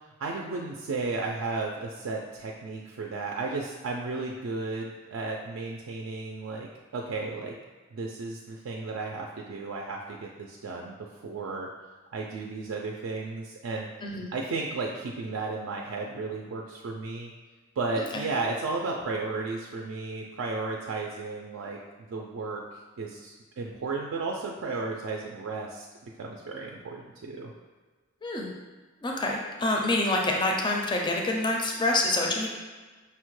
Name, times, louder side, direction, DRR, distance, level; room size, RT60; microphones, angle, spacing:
voice 1, 0.2-7.6 7.9-10.9 11.2-11.7 12.1-13.9 14.3-17.3 17.8-21.8 22.1-22.6 23.0-27.5, right 3 dB, 80° right, -1 dB, 0.4 m, -34 dB
voice 2, 28.2-28.5 29.0-32.5, left 2 dB, 25° left, 0 dB, 0.4 m, -27 dB
5.6 x 2.1 x 3.0 m, 1.3 s
head